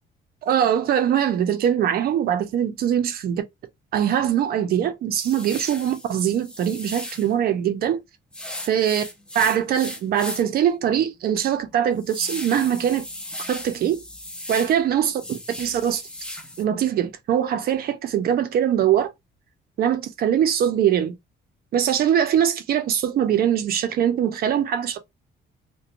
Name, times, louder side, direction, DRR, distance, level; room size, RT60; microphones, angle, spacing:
voice 1, 0.4-3.4 3.9-8.0 8.7-9.0 9.3-13.1 13.5-14.0 14.5-16.0 16.6-19.1 19.8-21.2 21.7-25.0, right 9 dB, 50° right, 0.5 m, -22 dB
sound 1, 5.1-7.3 8.3-10.6 11.0-11.1 11.6-14.7 15.1-16.6, left 1 dB, 5° left, 0.4 m, -36 dB
2.4 x 2.1 x 2.8 m
cardioid pair, 175°, 19 cm